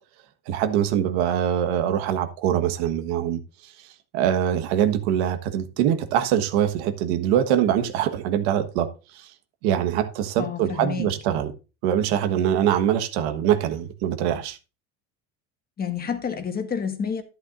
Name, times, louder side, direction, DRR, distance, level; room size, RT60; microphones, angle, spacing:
voice 1, 0.5-3.7 4.1-9.3 9.6-11.5 11.8-14.6, right 10 dB, 85° right, 1.4 m, -23 dB
voice 2, 10.4-11.1 15.8-17.2, left 7 dB, 30° left, 1.6 m, -29 dB
11.5 x 10.5 x 2.6 m
supercardioid pair, 120°, 32 cm